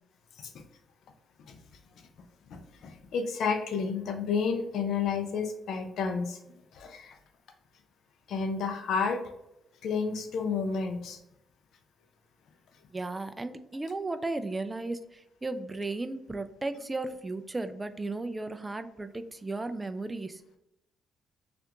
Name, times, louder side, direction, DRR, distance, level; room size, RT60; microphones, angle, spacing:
voice 1, 2.5-6.4 6.7-7.2 8.3-9.2 9.8-11.2, left 5 dB, 70° left, 6 dB, 0.5 m, -31 dB
voice 2, 12.9-20.4, right 2 dB, 20° right, 9 dB, 0.3 m, -35 dB
3.3 x 2.4 x 2.9 m, 0.83 s
cardioid pair, 90°, 0 cm